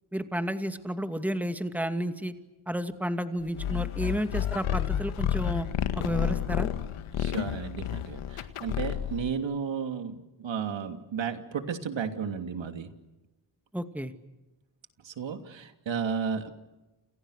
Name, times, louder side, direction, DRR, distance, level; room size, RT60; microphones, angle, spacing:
voice 1, 0.1-2.3 2.7-5.7 6.0-6.7 13.7-14.1, equal, 5° right, 7 dB, 2.4 m, -31 dB
sound 1, 3.6-9.3, left 10 dB, 85° left, 1.9 m, -30 dB
voice 2, 7.2-12.9 15.0-16.5, right 6 dB, 65° right, 6 dB, 2.9 m, -33 dB
29.5 x 29.0 x 6.6 m, 1.1 s
cardioid pair, 75°, 49 cm